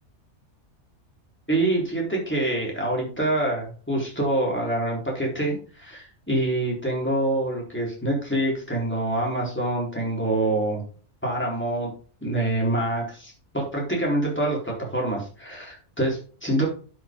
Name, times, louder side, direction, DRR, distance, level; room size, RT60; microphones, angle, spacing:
voice 1, 1.5-10.8 11.2-11.9 12.2-16.6, right 1 dB, 10° left, -3 dB, 4.1 m, -26 dB
11.5 x 6.6 x 3.8 m, 0.39 s
omnidirectional pair, 1.2 m